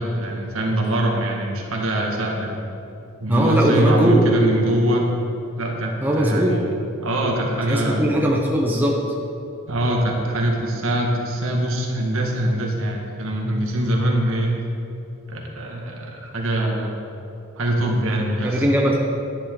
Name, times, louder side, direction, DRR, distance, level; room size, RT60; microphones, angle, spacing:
voice 1, 0.0-2.5 3.2-5.1 5.6-6.6 7.0-8.2 9.7-14.5 15.3-17.0 17.6-18.7, right 1 dB, 70° right, -1 dB, 1.7 m, -23 dB
voice 2, 3.3-4.4 6.0-6.6 7.7-8.9 18.4-19.0, equal, 10° right, -2 dB, 0.9 m, -19 dB
11.0 x 10.5 x 3.8 m, 2.8 s
head